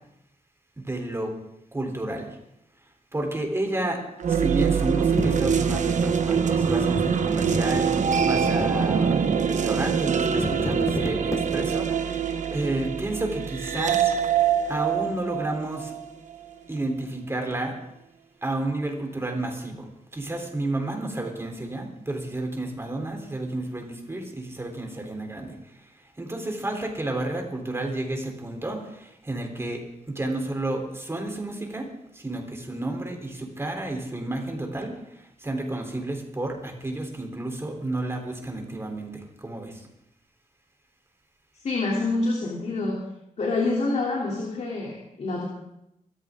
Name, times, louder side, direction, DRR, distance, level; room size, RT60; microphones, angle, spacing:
voice 1, 0.8-1.4 1.7-2.4 3.1-4.0 4.3-14.2 14.7-15.9 16.7-17.8 18.4-19.9 20.1-25.6 26.2-31.9 32.1-35.0 35.4-39.8, right 2 dB, 20° right, 2 dB, 3.7 m, -31 dB
sound 1, 4.2-16.4, right 7 dB, 70° right, 1.1 m, -24 dB
sound 2, 5.2-11.9, left 2 dB, 20° left, 1.1 m, -34 dB
voice 2, 41.6-43.0 43.4-45.5, left 3 dB, 60° left, -3 dB, 3.3 m, -26 dB
24.5 x 14.0 x 3.8 m, 0.83 s
wide cardioid pair, 115°, 13 cm